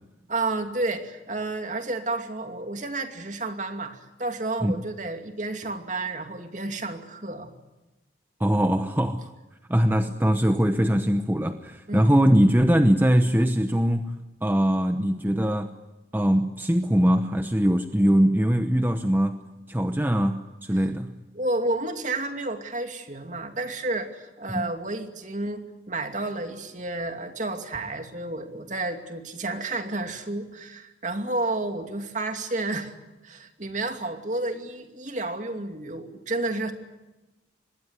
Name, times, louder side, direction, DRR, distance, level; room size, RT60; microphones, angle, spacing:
voice 1, 0.3-7.5 11.9-12.1 21.3-32.9 33.2-36.7, right 2 dB, 40° right, 6 dB, 2.6 m, -31 dB
voice 2, 8.4-9.3 9.7-14.1 14.4-15.7 16.1-19.4 19.7-21.1 24.5-24.7, equal, 10° right, 7 dB, 0.9 m, -22 dB
26.0 x 20.5 x 9.7 m, 1.1 s
head